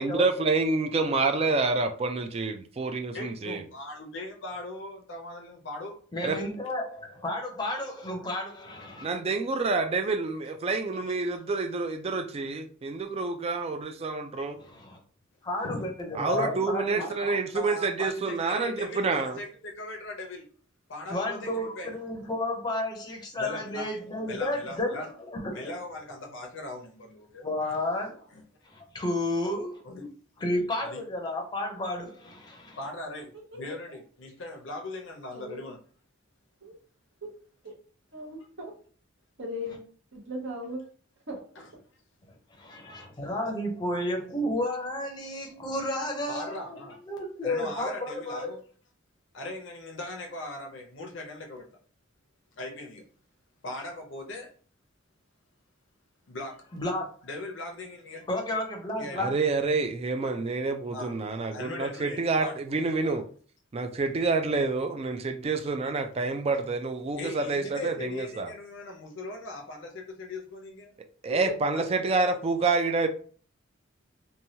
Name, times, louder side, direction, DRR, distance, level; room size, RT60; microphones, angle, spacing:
voice 1, 0.0-3.6 6.2-6.4 9.0-14.6 16.2-19.4 59.2-63.3 63.7-68.5 71.2-73.1, right 3 dB, 30° right, 0.3 m, -28 dB
voice 2, 3.1-6.0 11.1-11.2 15.6-15.9 16.2-16.7 17.0-20.5 20.9-21.9 23.4-23.9 24.3-25.1 25.5-27.8 28.3-28.4 29.8-30.1 30.8-31.0 32.8-35.8 41.6-41.7 43.2-43.5 46.3-47.0 47.4-48.6 49.3-51.7 52.6-53.0 53.6-54.5 56.3-56.6 57.2-58.2 58.9-59.2 60.9-61.1 61.5-62.5 67.2-70.9 71.7-72.2, left 2 dB, 65° left, 0.6 m, -39 dB
voice 3, 6.1-9.1 14.6-15.0 15.4-17.1 21.1-25.7 27.4-28.3 28.6-29.8 30.4-32.8 42.6-48.6 56.7-57.1 58.3-59.3, left 1 dB, 20° left, 0.6 m, -32 dB
voice 4, 35.3-35.6 36.6-36.7 37.2-37.3 37.6-37.7 38.1-38.7 39.4-39.8 40.1-40.8 41.3-41.4 71.3-71.5, equal, 65° right, 0.9 m, -37 dB
3.1 x 2.2 x 2.7 m
head